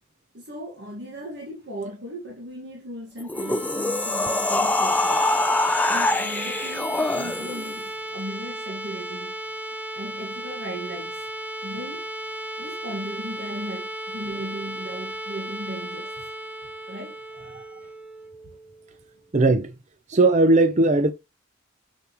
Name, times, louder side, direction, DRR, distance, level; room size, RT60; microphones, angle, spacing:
voice 1, 0.3-5.2 5.9-9.4 9.9-11.2 11.6-12.1 12.6-16.1 16.9-17.2, right 1 dB, 55° right, 1.6 m, -37 dB
sound 1, 3.2-7.8, left 2 dB, 10° left, 0.4 m, -24 dB
sound 2, 3.2-19.0, right 1 dB, 10° right, 1.2 m, -35 dB
voice 2, 19.3-19.7 20.1-21.1, right 2 dB, 35° right, 0.6 m, -18 dB
6.8 x 6.3 x 3.0 m
head